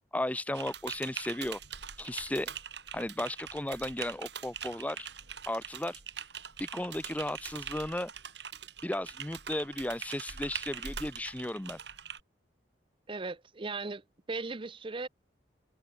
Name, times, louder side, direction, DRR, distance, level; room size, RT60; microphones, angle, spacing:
voice 1, 0.1-1.6 2.0-2.5 2.9-5.1 5.5-6.0 6.6-8.1 8.8-11.8, left 1 dB, 10° left, 0.7 m, -35 dB
Typing, 0.5-12.2, right 8 dB, 70° right, 4.3 m, -43 dB
voice 2, 13.1-15.1, right 3 dB, 30° right, 0.6 m, -38 dB
head